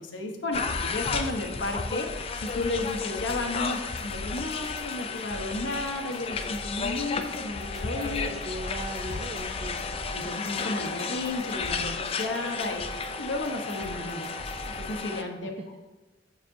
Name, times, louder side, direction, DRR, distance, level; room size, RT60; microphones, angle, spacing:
voice 1, 0.0-8.3 10.1-15.8, left 2 dB, 85° left, 3 dB, 1.0 m, -33 dB
sound 1, 0.5-15.2, left 4 dB, 30° left, 0.4 m, -33 dB
sound 2, 2.1-15.0, equal, ahead, 0.9 m, -44 dB
voice 2, 7.9-9.9 15.6-15.7, right 1 dB, 35° right, 2 dB, 0.4 m, -38 dB
7.3 x 6.5 x 2.7 m, 1.1 s
head